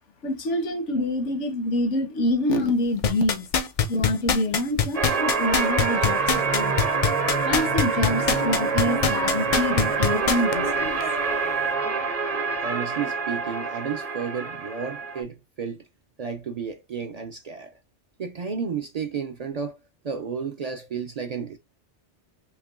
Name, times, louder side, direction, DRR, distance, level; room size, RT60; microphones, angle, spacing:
voice 1, 0.2-3.5 3.9-6.8 7.4-11.0, left 1 dB, 90° left, 1.3 m, -26 dB
sound 1, 3.0-10.5 11.0-11.1, left 7 dB, 60° left, 0.3 m, -22 dB
sound 2, 4.9-15.2, right 4 dB, 40° right, 0.7 m, -26 dB
voice 2, 12.6-15.8 16.2-17.7 18.2-19.8 20.0-21.6, right 6 dB, 65° right, 0.4 m, -32 dB
5.6 x 2.2 x 2.4 m
omnidirectional pair, 1.2 m